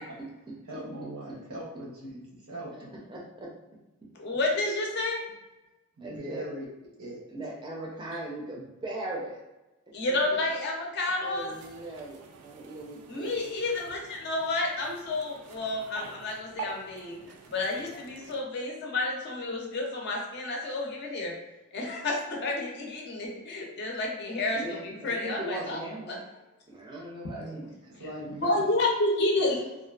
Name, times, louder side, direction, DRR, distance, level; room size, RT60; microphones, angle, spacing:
voice 1, 0.6-2.9 6.0-6.7 7.0-7.2 27.8-28.7, right 1 dB, 70° right, -3 dB, 0.7 m, -40 dB
voice 2, 3.1-3.5 6.0-6.4 7.3-9.4 10.3-10.4 11.2-13.5 24.5-26.2 26.7-27.7, right 1 dB, 20° right, -3 dB, 0.5 m, -38 dB
voice 3, 4.2-5.2 9.9-11.5 13.1-17.2 17.5-21.3 21.7-25.8 26.1-26.2 28.4-29.7, left 2 dB, 50° left, -1 dB, 0.5 m, -30 dB
sound 1, 11.3-18.4, right 4 dB, 85° right, 0.3 m, -47 dB
2.5 x 2.3 x 2.3 m, 1.0 s
head